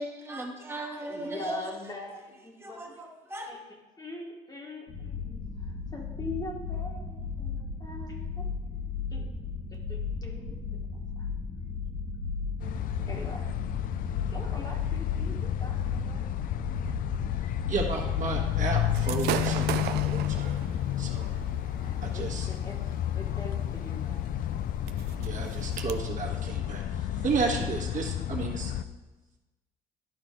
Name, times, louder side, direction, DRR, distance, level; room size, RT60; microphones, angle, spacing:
voice 1, 0.0-1.7 2.6-3.5, right 1 dB, 15° right, 1 dB, 1.1 m, -37 dB
voice 2, 1.1-2.8 3.5-3.6 4.0-8.5 9.1-9.3 9.7-10.5 11.2-11.3 13.1-13.5 14.3-16.2 21.6-24.5, left 2 dB, 25° left, 0 dB, 1.4 m, -42 dB
sound 1, 4.9-19.2, left 4 dB, 75° left, 1.9 m, -35 dB
sound 2, 12.6-28.8, left 11 dB, 55° left, 0.4 m, -31 dB
voice 3, 17.7-20.7 21.0-21.3 22.0-22.5 25.2-28.7, right 4 dB, 50° right, 0 dB, 1.4 m, -33 dB
Gunshot gunfire / Fireworks, 18.9-25.9, right 12 dB, 75° right, 0.4 m, -38 dB
11.5 x 4.1 x 3.7 m, 1.2 s
cardioid pair, 110°, 17 cm